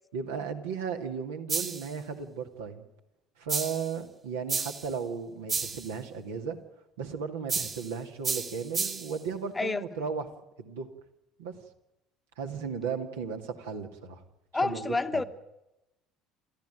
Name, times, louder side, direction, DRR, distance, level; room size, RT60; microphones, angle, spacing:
voice 1, 0.1-2.8 3.4-6.6 7.0-10.3 10.6-10.9 11.4-11.6 12.4-14.2 14.5-15.2, right 6 dB, 70° right, 4 dB, 2.3 m, -35 dB
sound 1, 1.5-1.9 3.5-3.9 4.5-4.9 5.5-5.9 7.5-7.9 8.2-9.2, right 5 dB, 30° right, 2.5 m, -32 dB
voice 2, 14.5-15.2, left 3 dB, 15° left, 10 dB, 1.2 m, -28 dB
29.5 x 14.0 x 9.2 m, 0.94 s
figure-of-eight pair, 60°, 0 cm